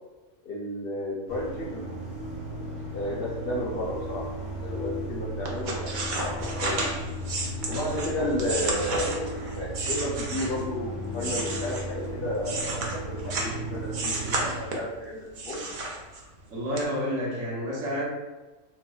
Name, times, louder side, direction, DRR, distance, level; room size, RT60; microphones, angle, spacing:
voice 1, 0.4-1.8 2.9-5.9 6.2-6.9 7.6-15.6, left 1 dB, 60° left, -5 dB, 0.6 m, -32 dB
sound 1, 1.3-14.6, right 1 dB, 40° right, 0.9 m, -35 dB
sound 2, 5.4-10.7 11.1-13.6 13.9-14.9 15.3-16.4 16.8-16.9, right 2 dB, 60° right, 0.5 m, -32 dB
voice 2, 16.5-18.0, equal, 80° right, -5 dB, 1.2 m, -29 dB
3.7 x 2.0 x 2.2 m, 1.2 s
omnidirectional pair, 1.3 m